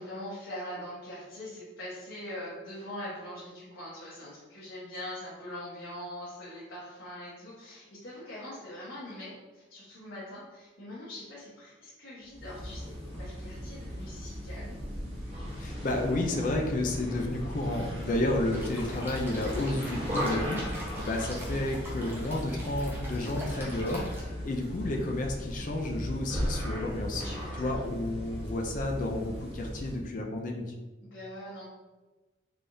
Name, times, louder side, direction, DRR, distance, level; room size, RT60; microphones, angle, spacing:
voice 1, 0.0-14.8 27.2-27.8 31.1-31.6, left 1 dB, 80° left, -9 dB, 1.0 m, -42 dB
sound 1, 12.3-30.0, equal, 30° right, 1.0 m, -37 dB
voice 2, 15.6-27.2 27.6-30.7, left 1 dB, 40° left, 2 dB, 0.4 m, -31 dB
sound 2, 18.5-24.2, equal, 10° right, 0.6 m, -43 dB
3.4 x 3.4 x 2.6 m, 1.2 s
head